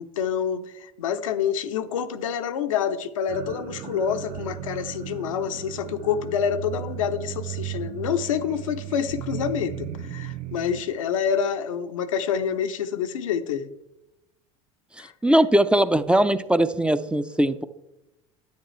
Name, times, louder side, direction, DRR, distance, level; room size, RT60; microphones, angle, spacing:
voice 1, 0.0-13.7 15.0-15.1, left 8 dB, 90° left, 9 dB, 0.6 m, -27 dB
sound 1, 3.3-10.8, right 12 dB, 60° right, 0.6 m, -36 dB
voice 2, 15.2-17.6, right 1 dB, 5° right, 12 dB, 0.5 m, -20 dB
10.5 x 9.3 x 3.2 m, 0.91 s
hypercardioid pair, 80°, 16 cm